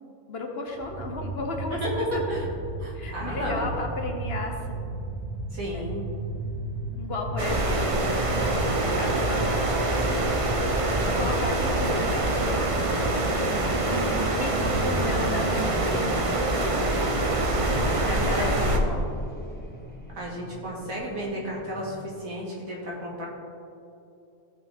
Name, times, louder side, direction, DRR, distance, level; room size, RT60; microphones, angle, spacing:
voice 1, 0.3-2.3 2.9-5.0 5.7-5.8 7.0-8.1 8.9-10.4 11.0-12.8 13.9-16.4 18.1-19.0, left 2 dB, 50° left, 2 dB, 1.2 m, -34 dB
sound 1, 0.7-15.7, right 2 dB, 60° right, 1.7 m, -35 dB
voice 2, 1.7-2.5 2.8-3.7 5.5-6.0 11.0-11.3 17.4-18.4 20.1-23.3, equal, 85° right, -4 dB, 2.5 m, -33 dB
sound 2, 4.8-22.1, equal, 5° left, 1.4 m, -42 dB
sound 3, 7.4-18.8, right 2 dB, 30° right, 0.7 m, -25 dB
15.0 x 6.0 x 3.6 m, 2.7 s
omnidirectional pair, 1.4 m